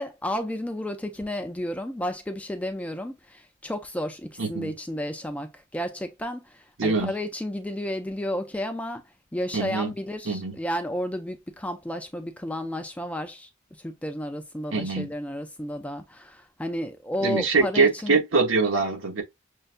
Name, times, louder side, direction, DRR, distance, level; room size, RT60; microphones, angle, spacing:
voice 1, 0.0-9.0 9.3-13.5 13.8-18.2, left 1 dB, 5° left, 0.4 m, -32 dB
voice 2, 4.4-4.7 6.8-7.1 9.5-9.9 10.2-10.6 14.7-15.1 17.2-19.2, right 4 dB, 70° right, 1.0 m, -24 dB
6.5 x 2.2 x 2.5 m
head